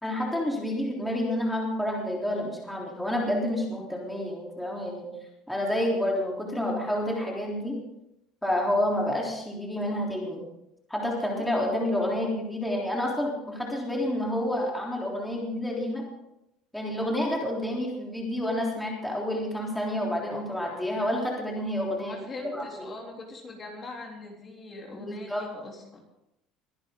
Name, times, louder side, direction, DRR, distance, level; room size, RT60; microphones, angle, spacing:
voice 1, 0.0-5.1 5.5-7.8 8.4-10.4 10.9-16.0 16.7-22.2 22.5-22.7 25.0-25.4, left 1 dB, 5° left, -3 dB, 3.6 m, -29 dB
voice 2, 22.1-26.0, left 2 dB, 30° left, -1 dB, 3.6 m, -41 dB
22.5 x 11.0 x 3.9 m, 0.84 s
cardioid pair, 135°, 0 cm